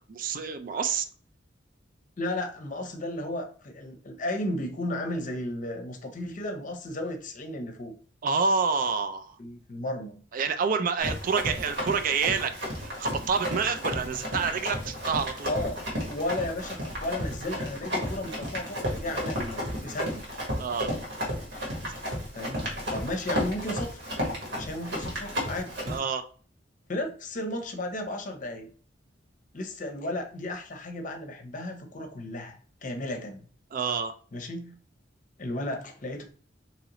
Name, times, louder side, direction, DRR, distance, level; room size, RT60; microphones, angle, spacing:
voice 1, 0.1-1.1 8.2-9.4 10.3-12.5 12.8-15.5 20.6-20.9 25.9-26.2 33.7-34.1, right 5 dB, 50° right, 9 dB, 0.4 m, -28 dB
voice 2, 2.2-8.0 9.4-10.2 15.4-20.3 22.3-24.0 24.5-25.8 26.9-28.7 29.5-33.5 34.3-34.8 35.4-36.2, left 1 dB, 45° left, 5 dB, 0.6 m, -34 dB
Run, 11.0-26.0, equal, 75° right, 1.6 m, -33 dB
3.7 x 3.1 x 2.9 m, 0.43 s
head